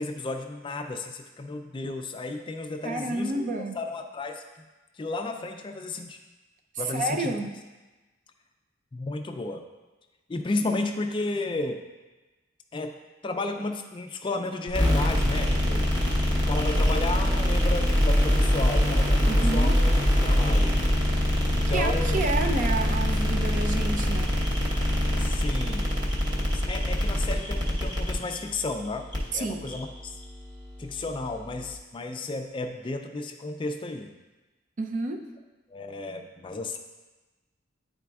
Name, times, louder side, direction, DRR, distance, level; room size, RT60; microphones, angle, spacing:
voice 1, 0.0-3.5 3.7-4.4 4.9-6.2 6.8-7.3 8.9-9.6 10.3-11.8 12.7-15.9 16.3-19.9 20.2-20.8 21.5-22.2 25.2-26.0 26.5-29.1 29.3-30.2 30.8-34.1 35.7-36.8, left 2 dB, 25° left, 5 dB, 0.4 m, -33 dB
voice 2, 2.8-3.8 6.9-7.5 19.3-19.8 21.7-24.4 29.3-29.7 34.8-35.3, right 2 dB, 45° right, 4 dB, 0.5 m, -30 dB
sound 1, 14.7-31.7, equal, 25° right, 1.0 m, -24 dB
10.0 x 4.1 x 2.3 m, 1.2 s
head